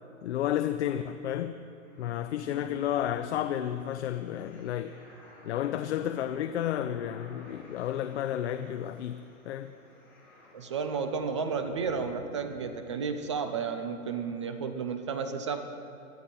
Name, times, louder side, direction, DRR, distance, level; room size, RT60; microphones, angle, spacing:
voice 1, 0.2-1.6 2.0-5.0 5.4-9.7, left 11 dB, 55° left, 0.6 m, -32 dB
sound 1, 1.8-13.6, equal, 5° left, 3.2 m, -51 dB
voice 2, 10.5-15.6, right 5 dB, 25° right, 0.4 m, -32 dB
21.0 x 12.5 x 4.4 m
hypercardioid pair, 160°, 41 cm